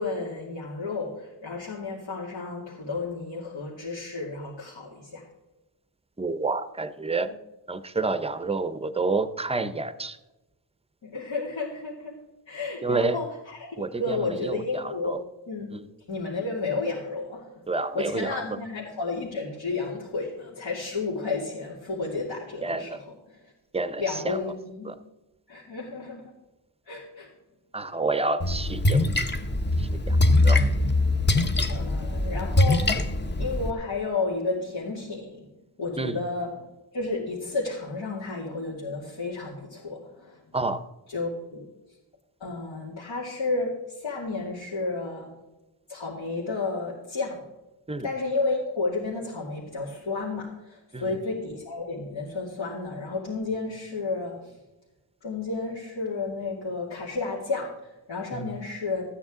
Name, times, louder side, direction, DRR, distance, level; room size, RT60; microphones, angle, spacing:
voice 1, 0.0-5.3 7.2-7.3 11.0-12.2 12.5-15.2 15.5-15.7 16.1-17.5 17.9-23.0 23.3-23.5 24.0-24.9 25.5-26.3 26.8-27.3 31.5-35.5 35.8-36.5 36.9-40.4 41.1-41.6 42.4-45.3 45.9-47.4 48.0-54.6 55.2-59.1, left 3 dB, 80° left, -7 dB, 2.5 m, -32 dB
voice 2, 6.2-7.3 7.7-10.2 12.8-13.2 13.8-15.2 15.7-15.8 17.7-18.4 22.6-23.0 23.7-24.4 24.8-24.9 27.7-29.1 29.8-30.2 30.4-30.6 36.0-36.2 40.5-40.8 47.9-48.1 50.9-51.2 58.3-58.5, right 3 dB, 15° right, 12 dB, 0.5 m, -29 dB
Splash splatter, 28.4-33.7, left 2 dB, 25° left, 0.7 m, -23 dB
13.5 x 9.0 x 3.7 m, 1.0 s
wide cardioid pair, 125°, 44 cm